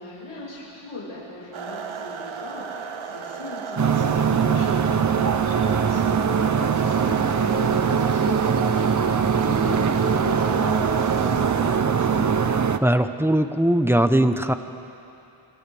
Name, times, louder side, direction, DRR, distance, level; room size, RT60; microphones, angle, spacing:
voice 1, 0.0-9.1 9.4-12.4, left 2 dB, 80° left, -8 dB, 5.8 m, -39 dB
sound 1, 1.5-11.8, right 6 dB, 70° right, 1.0 m, -35 dB
sound 2, 3.8-12.8, right 6 dB, 35° right, 0.7 m, -21 dB
voice 2, 12.8-14.5, right 1 dB, 5° right, 8 dB, 0.9 m, -20 dB
28.5 x 27.0 x 3.5 m, 2.8 s
wide cardioid pair, 80°, 50 cm